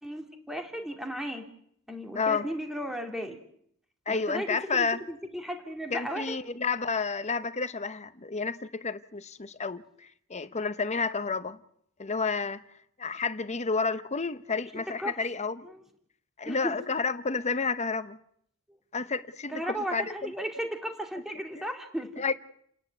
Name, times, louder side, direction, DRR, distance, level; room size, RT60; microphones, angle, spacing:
voice 1, 0.0-1.5 1.9-3.4 4.1-6.3 15.0-15.2 16.5-16.8 19.5-22.2, equal, ahead, 2.5 m, -35 dB
voice 2, 2.1-2.5 4.1-5.0 5.9-11.6 12.0-12.6 13.0-15.7 16.4-18.2 18.9-20.3 21.5-21.6 22.2-22.3, left 4 dB, 30° left, 0.9 m, -30 dB
29.5 x 10.5 x 9.5 m
head